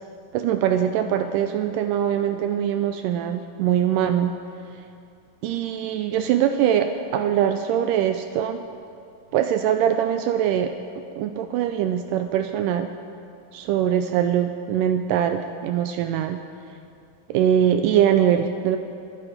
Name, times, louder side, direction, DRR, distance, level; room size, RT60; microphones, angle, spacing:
voice 1, 0.3-4.3 5.4-8.7 9.3-10.8 11.2-12.9 13.5-16.4 17.3-18.8, right 9 dB, 80° right, 8 dB, 2.0 m, -22 dB
26.5 x 9.0 x 3.9 m, 2.5 s
omnidirectional pair, 4.1 m